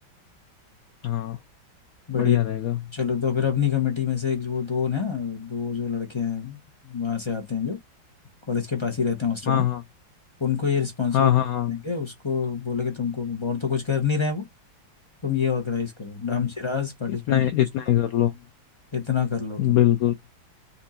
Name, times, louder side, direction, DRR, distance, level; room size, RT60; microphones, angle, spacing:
voice 1, 1.0-1.4 2.1-2.8 9.5-9.8 11.1-11.7 16.3-16.4 17.3-18.3 19.6-20.1, left 12 dB, 85° left, 0.7 m, -22 dB
voice 2, 2.9-6.6 6.8-7.8 8.5-9.6 10.4-11.3 11.7-14.4 15.2-17.4 18.9-19.8, left 6 dB, 30° left, 0.5 m, -26 dB
4.3 x 2.5 x 4.2 m
omnidirectional pair, 2.2 m